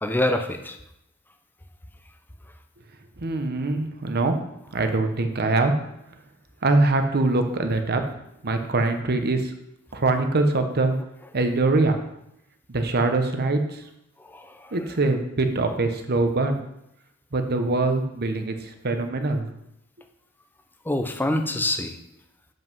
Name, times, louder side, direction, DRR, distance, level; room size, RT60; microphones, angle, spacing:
voice 1, 0.0-0.8 14.2-14.8 20.8-22.0, left 1 dB, 10° left, 6 dB, 0.6 m, -26 dB
voice 2, 3.2-4.3 4.7-5.7 6.6-8.0 8.4-9.5 9.9-10.9 11.3-12.0 12.7-13.8 14.7-16.6 17.3-19.5, right 2 dB, 50° right, 7 dB, 0.9 m, -23 dB
7.7 x 5.3 x 5.4 m, 0.81 s
head